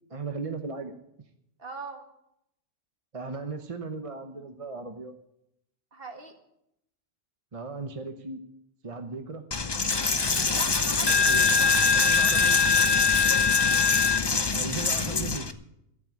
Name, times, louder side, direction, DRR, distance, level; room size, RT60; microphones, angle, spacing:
voice 1, 0.1-0.9 3.1-5.1 7.5-8.4 8.8-9.4 11.0-11.4 11.9-12.5 14.5-15.5, right 4 dB, 30° right, 6 dB, 0.9 m, -37 dB
voice 2, 1.6-2.0 5.9-6.3 10.5-12.1 13.0-13.3, right 3 dB, 50° right, 4 dB, 2.0 m, -41 dB
Coin (dropping), 9.5-15.5, left 4 dB, 25° left, 0.6 m, -23 dB
13.0 x 7.6 x 9.8 m, 0.80 s
omnidirectional pair, 1.2 m